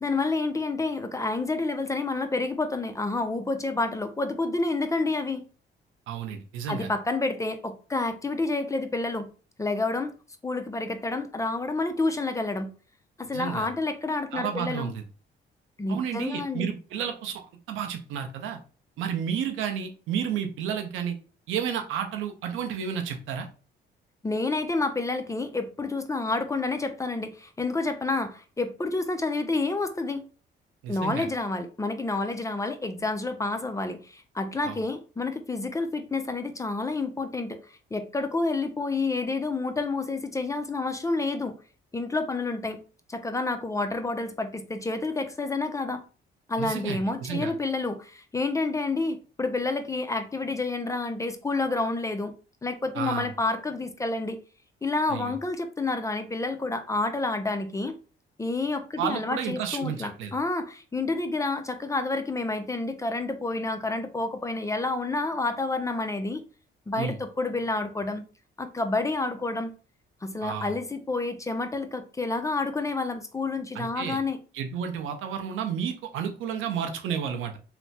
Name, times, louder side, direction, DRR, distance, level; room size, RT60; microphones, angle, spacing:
voice 1, 0.0-5.4 6.7-9.3 9.6-10.1 10.4-12.7 13.2-14.9 15.8-16.7 24.2-30.2 30.9-37.6 37.9-41.6 41.9-42.8 43.1-46.0 46.5-52.3 52.6-54.4 54.8-58.0 58.4-66.4 66.9-68.2 68.6-69.7 70.2-74.4, left 3 dB, 15° left, 0.4 m, -29 dB
voice 2, 6.1-6.9 13.3-13.7 14.3-15.0 15.9-17.4 17.7-18.6 19.0-21.2 21.5-23.5 30.8-31.3 34.6-34.8 46.6-47.5 52.9-53.3 55.1-55.3 59.0-60.3 67.0-67.2 70.4-70.7 73.7-74.2 74.5-77.6, right 8 dB, 85° right, 0.6 m, -31 dB
3.3 x 2.0 x 2.7 m
cardioid pair, 90°, 20 cm